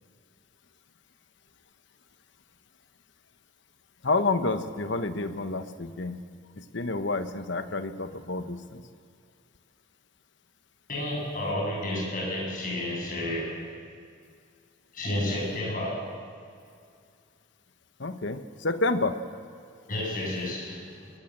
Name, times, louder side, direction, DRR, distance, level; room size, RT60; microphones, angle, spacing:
voice 1, 4.0-6.2 6.7-8.8 18.0-19.2, left 3 dB, 60° left, 9 dB, 1.1 m, -29 dB
voice 2, 10.9-13.5 14.9-16.1 19.9-21.1, left 1 dB, 40° left, -3 dB, 8.0 m, -31 dB
23.0 x 21.0 x 7.5 m, 2.3 s
head